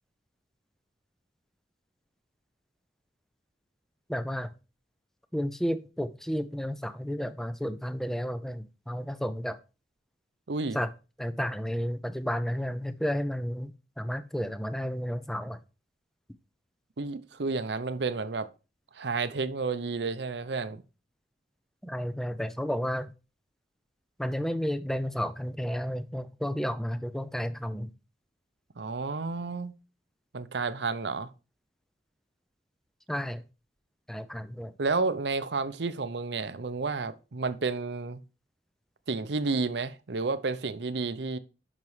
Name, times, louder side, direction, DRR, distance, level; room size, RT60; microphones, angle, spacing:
voice 1, 4.1-4.5 5.3-9.6 10.7-10.9 11.2-13.7 14.0-15.6 21.8-23.1 24.2-27.9 33.1-33.4 34.1-34.7, equal, ahead, 0.5 m, -32 dB
voice 2, 10.5-10.8 17.0-18.5 18.9-20.8 28.8-29.7 30.3-31.3 34.8-38.2 39.1-41.4, right 4 dB, 75° right, 0.7 m, -31 dB
10.5 x 5.9 x 3.2 m
head